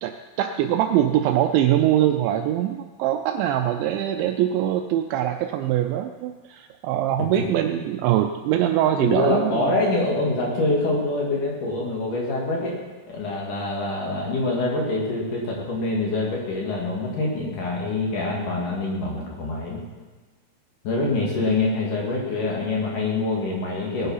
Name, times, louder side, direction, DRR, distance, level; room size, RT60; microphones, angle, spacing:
voice 1, 0.0-9.7, right 11 dB, 85° right, 6 dB, 2.7 m, -23 dB
voice 2, 9.0-12.8 13.1-19.8 20.8-24.1, left 2 dB, 50° left, -2 dB, 3.0 m, -25 dB
19.5 x 9.5 x 5.7 m, 1.3 s
omnidirectional pair, 5.7 m